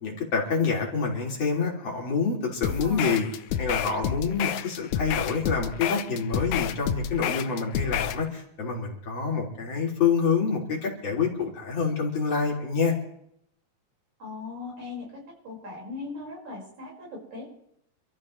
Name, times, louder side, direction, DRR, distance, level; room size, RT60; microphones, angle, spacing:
voice 1, 0.0-3.3 3.6-12.9, left 5 dB, 55° left, -2 dB, 4.0 m, -27 dB
sound 1, 2.6-8.2, left 10 dB, 80° left, 2.0 m, -30 dB
voice 2, 14.2-17.5, left 3 dB, 75° right, -3 dB, 6.4 m, -39 dB
27.0 x 13.5 x 3.2 m, 0.75 s
omnidirectional pair, 3.3 m